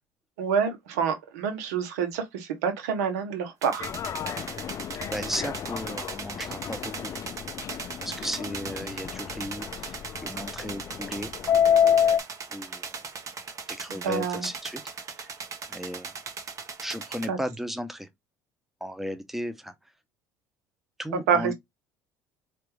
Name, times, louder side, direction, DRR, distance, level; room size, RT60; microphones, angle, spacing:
voice 1, 0.4-3.9 13.9-14.5 17.3-17.4 21.3-21.5, right 6 dB, 85° right, 1.0 m, -27 dB
sound 1, 3.6-17.3, right 5 dB, 40° right, 1.1 m, -39 dB
Subway metro underground, 3.8-12.2, left 8 dB, 40° left, 0.4 m, -28 dB
voice 2, 5.1-7.1 8.0-11.3 12.5-13.0 13.7-14.8 15.2-15.3 15.7-16.2 16.8-18.1 18.8-19.7 21.0-21.5, equal, 5° right, 0.7 m, -35 dB
4.5 x 2.5 x 3.1 m
hypercardioid pair, 75°, 8 cm